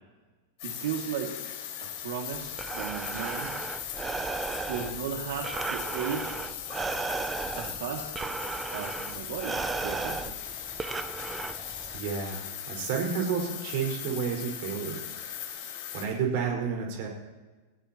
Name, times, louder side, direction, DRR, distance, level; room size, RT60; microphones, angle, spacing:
sound 1, 0.6-16.0, left 10 dB, 40° left, 5.1 m, -39 dB
voice 1, 0.6-1.4 1.8-3.6 4.7-6.4 7.6-8.1 8.7-10.6, right 7 dB, 65° right, 0 dB, 2.4 m, -36 dB
Breathing, 2.3-12.0, right 4 dB, 10° right, 0.5 m, -35 dB
voice 2, 11.9-15.0 15.4-15.5 15.9-17.1, right 6 dB, 45° right, 1 dB, 5.1 m, -31 dB
29.5 x 15.5 x 3.0 m, 1.3 s
supercardioid pair, 180°, 0 cm